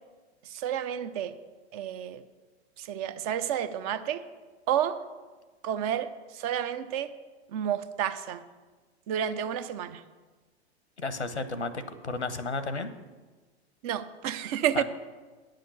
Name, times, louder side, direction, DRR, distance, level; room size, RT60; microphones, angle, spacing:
voice 1, 0.4-1.3 1.7-2.2 2.8-4.2 4.7-5.0 5.6-7.1 7.5-8.4 9.1-10.0 13.8-14.8, right 9 dB, 35° right, 12 dB, 0.6 m, -30 dB
voice 2, 11.0-12.9 14.7-14.8, left 3 dB, 85° left, 12 dB, 1.0 m, -33 dB
9.4 x 6.6 x 8.1 m, 1.3 s
figure-of-eight pair, 100°, 33 cm